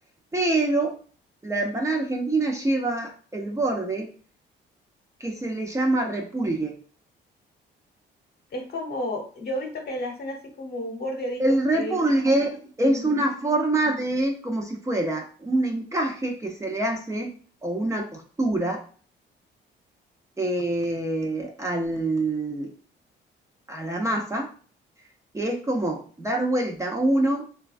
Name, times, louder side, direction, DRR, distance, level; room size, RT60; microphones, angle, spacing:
voice 1, 0.3-0.9 1.4-4.1 5.2-6.8 11.4-17.3 17.6-18.8 20.4-22.7 23.7-24.5 25.3-27.5, right 2 dB, 15° right, 1 dB, 0.5 m, -25 dB
voice 2, 8.5-11.4 11.7-12.0, left 1 dB, 55° left, 2 dB, 0.9 m, -32 dB
3.1 x 2.3 x 2.4 m, 0.41 s
cardioid pair, 90°, 20 cm